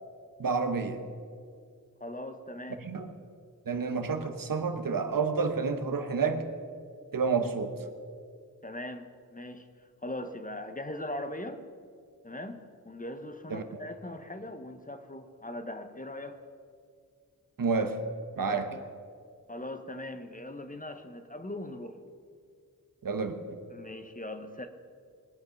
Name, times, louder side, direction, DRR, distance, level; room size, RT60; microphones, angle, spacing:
voice 1, 0.4-1.1 2.8-3.1 3.7-6.5 7.1-7.8 13.5-13.6 17.6-18.0 18.4-18.8 23.0-23.6, right 5 dB, 70° right, 7 dB, 1.1 m, -29 dB
voice 2, 2.0-2.9 8.6-9.7 10.0-11.6 12.2-16.4 18.5-18.8 19.5-22.0 23.7-24.7, left 1 dB, 25° left, 8 dB, 0.9 m, -40 dB
20.5 x 8.6 x 5.8 m, 2.2 s
wide cardioid pair, 105°, 35 cm